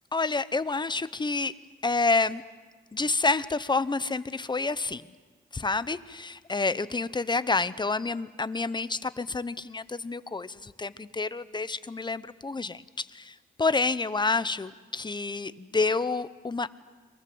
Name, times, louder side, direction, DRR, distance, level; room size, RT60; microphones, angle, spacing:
voice 1, 0.1-1.5 1.8-2.4 2.9-5.0 5.5-16.7, left 3 dB, 20° left, 15 dB, 0.9 m, -28 dB
29.5 x 23.0 x 7.9 m, 1.3 s
cardioid pair, 105°, 20 cm